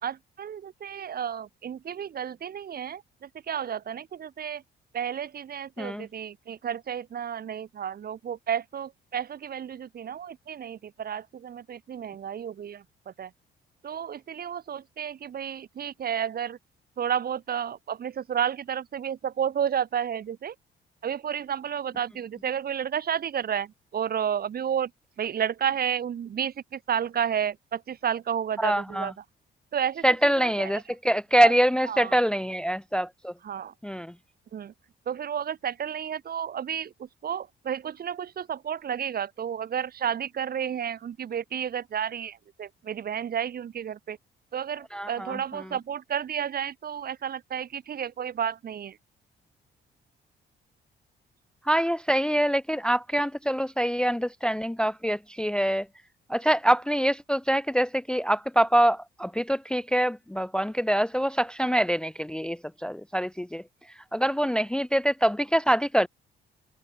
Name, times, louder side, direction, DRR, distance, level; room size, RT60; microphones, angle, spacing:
voice 1, 0.0-4.6 4.9-13.3 13.8-16.6 17.0-20.5 21.0-24.9 25.2-29.1 29.7-30.0 30.4-30.8 31.4-31.5 31.9-32.2 33.4-33.7 34.5-34.7 35.1-44.2 44.5-49.0, right 8 dB, 50° right, 1.1 m, -31 dB
voice 2, 28.6-29.1 30.0-33.3 33.8-34.1 44.9-45.4 51.7-55.9 56.3-63.6 64.1-66.1, equal, 5° left, 0.5 m, -25 dB
cardioid pair, 90°, 20 cm